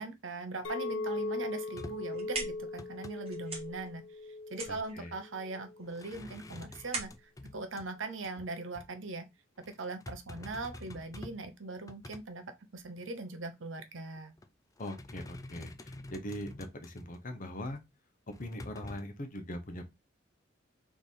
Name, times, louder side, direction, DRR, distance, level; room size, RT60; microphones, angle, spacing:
voice 1, 0.0-4.0 4.5-7.1 7.5-9.3 9.7-14.3, right 3 dB, 70° right, 0.8 m, -40 dB
Chink clink, 0.6-5.9, left 2 dB, 70° left, 0.8 m, -39 dB
sound 1, 1.7-2.2 2.6-3.2 5.8-7.9 8.2-8.5 8.7-8.9 9.6-11.5 11.8-12.3 12.8-12.9 14.2-14.5 14.8-17.2 17.6-17.8 18.3-19.0, left 1 dB, 15° left, 0.4 m, -48 dB
sound 2, 1.9-8.8, right 3 dB, 30° right, 1.5 m, -43 dB
voice 2, 4.7-5.1 14.8-17.8 18.4-19.9, left 1 dB, 40° left, 0.9 m, -41 dB
3.6 x 3.3 x 4.1 m
head